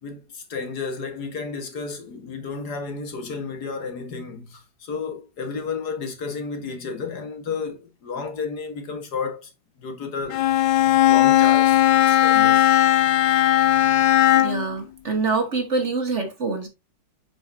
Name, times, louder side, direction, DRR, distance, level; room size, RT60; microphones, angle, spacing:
voice 1, 0.0-9.5 9.8-10.5 11.0-12.7, left 5 dB, 65° left, 2.1 m, -32 dB
Bowed string instrument, 10.3-14.7, left 13 dB, 80° left, 1.3 m, -17 dB
voice 2, 14.3-16.7, right 3 dB, 40° right, 1.6 m, -25 dB
7.5 x 6.0 x 2.7 m
omnidirectional pair, 1.9 m